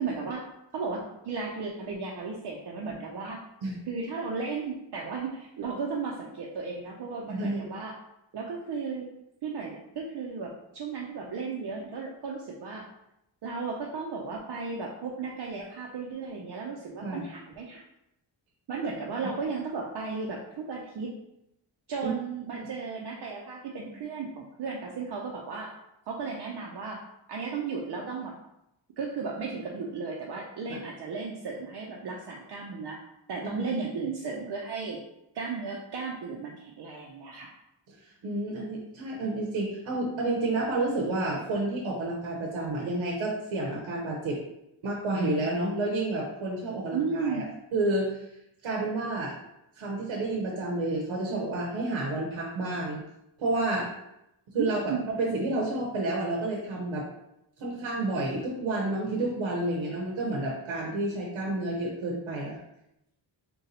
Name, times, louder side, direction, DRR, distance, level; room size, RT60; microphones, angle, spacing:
voice 1, 0.0-3.4 3.9-7.9 8.3-9.1 9.4-12.8 13.4-17.8 18.7-21.1 21.9-25.7 26.1-27.0 27.3-28.3 29.0-33.0 33.3-35.0 35.3-37.5 46.9-47.5 54.6-55.1, right 4 dB, 60° right, -2 dB, 0.6 m, -35 dB
voice 2, 7.3-7.7 17.0-17.2 22.0-22.1 22.5-22.7 30.7-30.8 33.6-33.7 38.2-44.4 44.8-47.4 47.7-48.2 48.6-49.4 49.8-53.0 53.4-53.9 54.5-57.1 57.6-62.6, right 2 dB, 85° right, -2 dB, 0.8 m, -30 dB
4.0 x 2.3 x 4.0 m, 0.85 s
wide cardioid pair, 140°, 46 cm